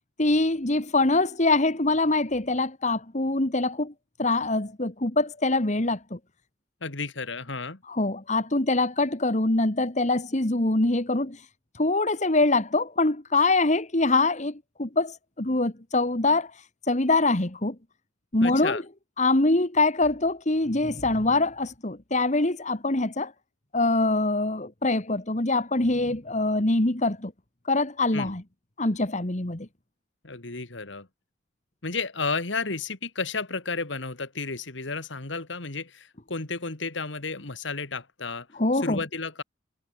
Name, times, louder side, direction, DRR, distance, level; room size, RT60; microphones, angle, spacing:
voice 1, 0.2-3.9 4.2-6.2 7.9-11.4 11.8-16.5 16.9-17.8 18.3-18.8 19.2-23.3 23.7-27.3 27.7-28.4 28.8-29.7 38.6-39.0, left 2 dB, 40° left, 1.8 m, -24 dB
voice 2, 6.8-7.8 18.4-18.8 28.1-28.4 30.2-31.1 31.8-38.5 38.7-39.4, left 4 dB, 70° left, 2.2 m, -32 dB
head